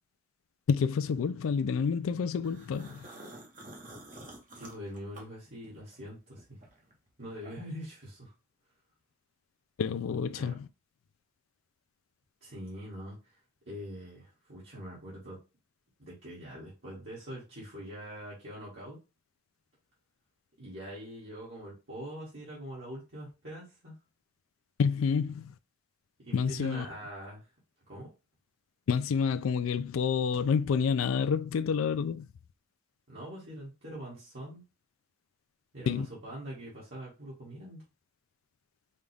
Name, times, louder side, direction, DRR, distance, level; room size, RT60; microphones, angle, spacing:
voice 1, 0.7-3.1 9.8-10.7 24.8-25.5 26.3-26.9 28.9-32.3 35.9-36.1, left 6 dB, 85° left, 0.4 m, -28 dB
sound 1, 2.4-6.0 6.4-7.9, right 1 dB, 40° right, 1.0 m, -49 dB
voice 2, 4.5-6.4 7.2-8.3 10.3-10.5 12.4-13.4 13.7-15.4 16.0-19.0 20.6-23.9 26.2-27.4 27.9-28.1 33.1-34.6 35.7-37.8, equal, 60° right, 1.9 m, -43 dB
5.4 x 2.4 x 3.4 m
head